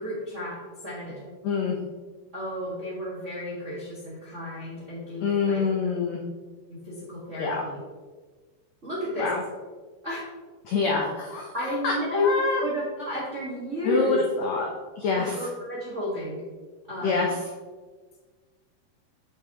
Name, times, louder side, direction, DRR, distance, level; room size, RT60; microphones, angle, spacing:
voice 1, 0.0-1.3 2.3-5.6 6.7-7.8 8.8-9.3 10.0-10.2 11.5-12.3 12.6-14.2 15.1-16.4 16.9-17.4, left 1 dB, 50° right, -7 dB, 0.8 m, -32 dB
voice 2, 1.4-1.8 5.2-6.2 7.4-7.6 9.2-9.4 10.6-11.5 11.8-11.9 12.2-12.6 13.8-14.7 15.0-15.5 17.0-17.3, left 4 dB, 80° left, 0 dB, 1.5 m, -26 dB
8.0 x 7.4 x 3.0 m, 1.4 s
omnidirectional pair, 4.2 m